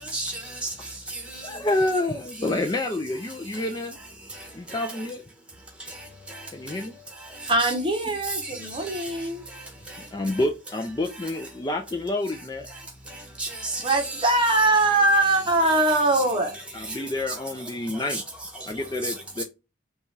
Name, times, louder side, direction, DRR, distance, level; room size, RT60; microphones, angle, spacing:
voice 1, 0.0-1.5 2.4-2.6 3.5-3.7 4.3-5.1 5.9-6.8 7.2-7.7 8.2-9.3 9.5-10.0 10.3-10.4 12.7-12.8 13.1-14.7 15.1-16.2 16.5-19.4, right 2 dB, 5° right, 1.3 m, -36 dB
voice 2, 1.3-4.0 4.5-5.2 6.5-6.9 10.1-12.7 16.7-18.2 18.7-19.4, left 2 dB, 20° left, 0.4 m, -28 dB
voice 3, 7.5-9.4 13.8-16.5, right 2 dB, 25° right, 0.9 m, -22 dB
5.3 x 2.4 x 3.2 m
head